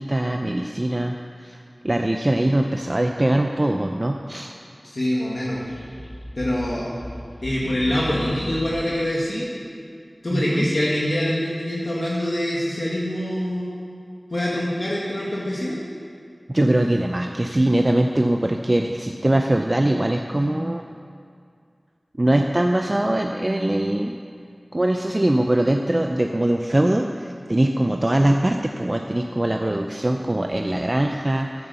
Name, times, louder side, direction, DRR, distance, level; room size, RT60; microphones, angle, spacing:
voice 1, 0.0-4.6 10.3-10.7 12.0-12.2 16.5-20.8 22.2-24.2 24.7-31.7, right 1 dB, 35° right, 3 dB, 0.6 m, -22 dB
voice 2, 4.8-5.6 6.4-6.9 7.4-9.6 10.2-14.0 14.3-15.8, left 1 dB, 60° left, -6 dB, 1.9 m, -25 dB
sound 1, 5.4-9.1, equal, 10° left, 0.6 m, -37 dB
10.5 x 8.7 x 6.9 m, 2.3 s
wide cardioid pair, 60°, 0 cm